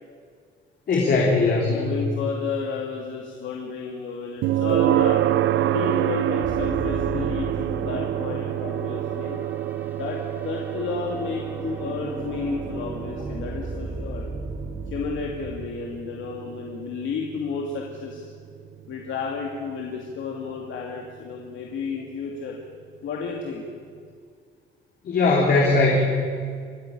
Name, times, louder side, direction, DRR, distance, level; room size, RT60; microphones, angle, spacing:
voice 1, 0.9-1.9 25.0-26.0, left 3 dB, 55° left, -2 dB, 3.4 m, -19 dB
voice 2, 1.7-5.2 5.7-9.4 10.0-14.3 14.9-18.3 18.9-22.6 23.0-23.6, left 5 dB, 85° left, -1 dB, 2.5 m, -32 dB
sound 1, 4.4-19.4, right 12 dB, 80° right, 0.7 m, -27 dB
sound 2, 6.4-15.6, right 1 dB, 10° right, 1.7 m, -36 dB
26.5 x 10.5 x 10.0 m, 2.1 s
cardioid pair, 160°, 19 cm